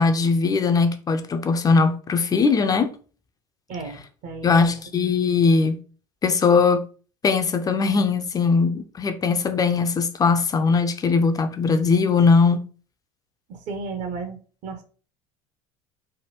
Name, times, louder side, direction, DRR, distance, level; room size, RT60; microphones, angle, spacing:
voice 1, 0.0-2.9 4.4-5.8 6.2-6.8 7.2-12.6, left 4 dB, 20° left, 0.4 m, -20 dB
voice 2, 3.7-4.7 13.5-14.4 14.6-14.8, right 4 dB, 45° right, 0.7 m, -33 dB
3.3 x 2.2 x 2.9 m
figure-of-eight pair, 70°, 17 cm